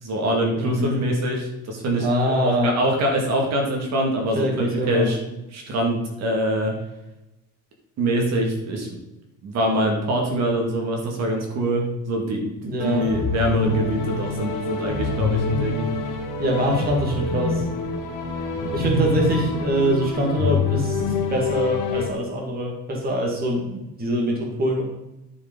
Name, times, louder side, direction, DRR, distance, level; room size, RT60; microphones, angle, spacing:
voice 1, 0.0-5.2 5.5-6.7 8.0-9.0 9.4-15.8, right 1 dB, 45° right, 1 dB, 2.2 m, -24 dB
voice 2, 0.6-1.0 2.0-2.8 4.3-5.1 12.6-13.1 16.4-17.7 18.7-24.8, equal, 25° right, 0 dB, 2.1 m, -24 dB
sound 1, 12.8-22.1, left 3 dB, 55° left, 2.2 m, -26 dB
11.0 x 5.5 x 5.4 m, 0.96 s
cardioid pair, 155°, 37 cm